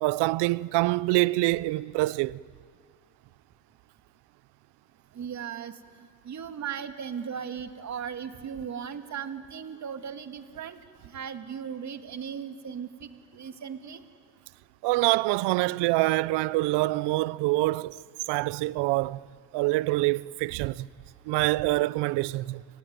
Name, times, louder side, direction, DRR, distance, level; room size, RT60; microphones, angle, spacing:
voice 1, 0.0-2.4 14.8-18.0 18.3-19.3 19.5-20.9 21.3-22.6, right 20 dB, 70° right, 0.8 m, -25 dB
voice 2, 5.1-10.8 11.0-14.0, right 7 dB, 40° right, 2.1 m, -37 dB
30.0 x 19.0 x 9.5 m
supercardioid pair, 90°, 43 cm